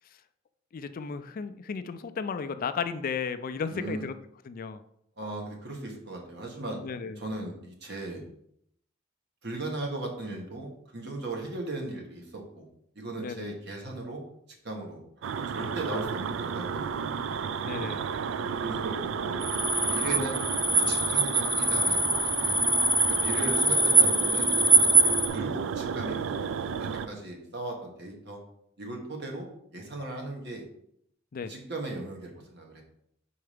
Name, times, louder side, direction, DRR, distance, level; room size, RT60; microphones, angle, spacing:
voice 1, 0.7-4.1 4.4-4.8 6.8-7.2 13.2-13.5 17.6-18.0 23.3-23.7 31.3-31.5, left 5 dB, 45° left, 11 dB, 0.4 m, -34 dB
voice 2, 3.7-4.1 5.2-6.8 7.2-8.2 9.4-12.7 12.9-14.2 14.6-15.0 15.5-17.1 18.6-19.4 19.9-20.4 20.7-22.6 23.1-24.5 25.3-28.4 28.8-30.6 31.5-32.8, right 2 dB, 60° right, 1 dB, 1.4 m, -37 dB
sound 1, 15.2-27.1, right 6 dB, 75° right, 0.4 m, -32 dB
sound 2, 19.4-25.3, right 2 dB, 20° right, 0.6 m, -23 dB
4.7 x 4.3 x 5.0 m, 0.73 s
head